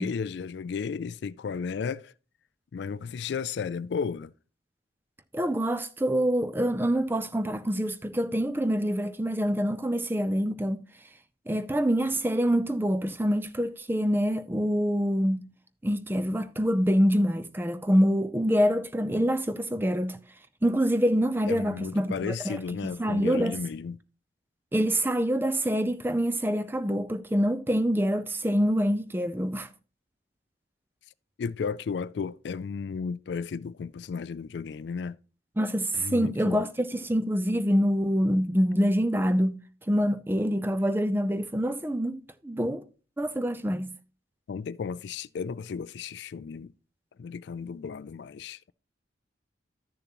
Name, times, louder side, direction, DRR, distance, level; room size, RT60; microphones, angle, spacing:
voice 1, 0.0-2.1 2.7-4.3 21.5-24.0 31.4-35.2 35.9-36.6 44.5-46.7 47.2-48.7, left 5 dB, 70° left, 0.3 m, -34 dB
voice 2, 5.3-10.8 11.5-15.5 15.8-20.2 20.6-23.6 24.7-29.7 35.6-39.6 39.9-42.8 43.2-43.9, equal, 10° right, 0.4 m, -26 dB
12.5 x 6.8 x 3.0 m
head